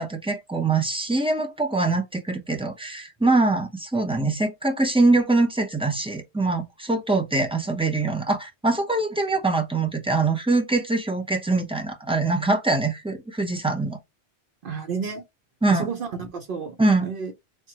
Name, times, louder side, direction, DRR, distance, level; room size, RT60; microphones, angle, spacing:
voice 1, 0.0-14.0 15.6-15.9 16.8-17.1, right 3 dB, 10° right, 0.4 m, -23 dB
voice 2, 14.6-15.2 15.7-17.3, right 5 dB, 65° right, 0.7 m, -32 dB
3.4 x 2.1 x 2.8 m
omnidirectional pair, 1.1 m